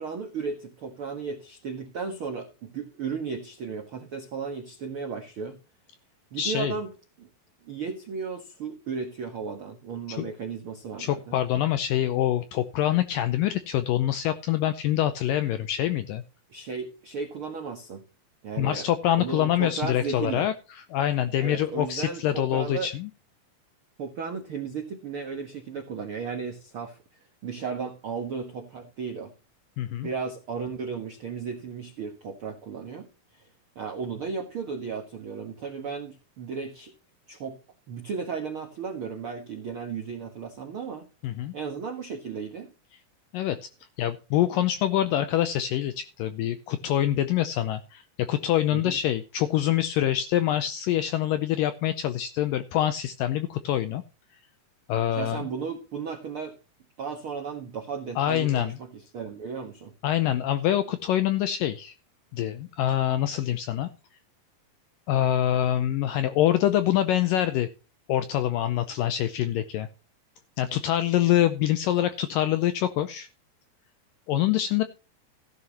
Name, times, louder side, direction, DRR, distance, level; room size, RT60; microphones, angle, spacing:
voice 1, 0.0-5.6 6.3-6.9 7.2-7.3 7.6-11.4 16.5-18.0 18.4-18.9 19.2-20.5 21.4-22.9 24.0-27.0 27.4-29.3 30.0-33.5 33.7-36.9 37.3-37.6 37.9-42.7 48.7-49.0 55.1-56.6 57.0-59.9, right 5 dB, 70° right, 4 dB, 1.2 m, -35 dB
voice 2, 6.4-6.7 10.1-10.3 11.0-16.2 18.6-23.1 29.8-30.1 41.2-41.5 43.3-43.6 44.0-54.0 54.9-55.4 58.2-58.7 60.0-61.9 62.3-63.9 65.1-67.7 68.1-69.9 70.6-73.3 74.3-74.8, left 12 dB, 80° left, 11 dB, 2.0 m, -25 dB
15.5 x 11.0 x 3.0 m, 0.33 s
omnidirectional pair, 4.6 m